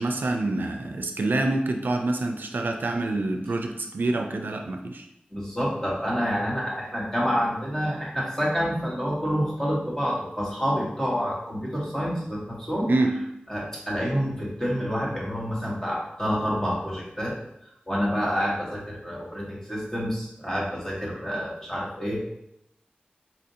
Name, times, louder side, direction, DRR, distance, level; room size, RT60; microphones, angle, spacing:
voice 1, 0.0-5.1 12.9-13.2, right 2 dB, 90° right, 4 dB, 0.3 m, -26 dB
voice 2, 5.3-12.9 13.5-17.3 17.9-22.3, equal, 15° left, -5 dB, 1.3 m, -28 dB
4.2 x 2.5 x 2.7 m, 0.80 s
wide cardioid pair, 55°, 3 cm